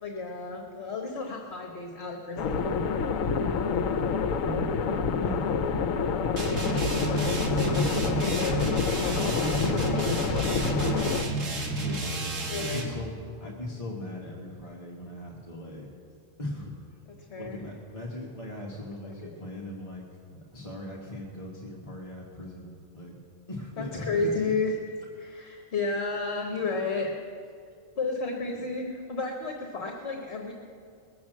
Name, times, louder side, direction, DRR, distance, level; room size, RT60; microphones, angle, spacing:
voice 1, 0.0-2.8 7.5-7.7 8.1-8.6 12.5-12.8 17.3-17.6 19.0-19.3 23.8-24.7 25.2-27.1 27.9-30.5, left 3 dB, 55° left, 1 dB, 1.5 m, -32 dB
sound 1, 2.4-11.2, left 5 dB, 90° left, 1.1 m, -27 dB
voice 2, 4.4-5.7 6.9-7.3 7.6-7.9 8.5-8.6 9.2-15.9 16.4-16.7 17.4-20.0 20.3-23.2 23.5-24.3, left 1 dB, 25° left, -4 dB, 1.5 m, -38 dB
sound 2, 6.4-13.0, right 2 dB, 75° right, 1.9 m, -31 dB
20.0 x 7.2 x 7.5 m, 2.3 s
omnidirectional pair, 1.3 m